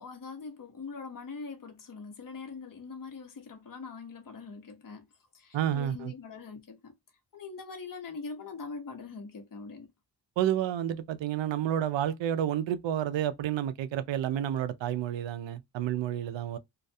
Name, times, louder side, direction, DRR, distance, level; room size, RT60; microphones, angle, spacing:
voice 1, 0.0-5.1 5.3-6.9 7.3-9.9, left 4 dB, 50° left, 0.9 m, -42 dB
voice 2, 5.5-6.1 10.4-16.6, right 11 dB, 80° right, 0.5 m, -30 dB
2.4 x 2.2 x 2.5 m
wide cardioid pair, 90°, 44 cm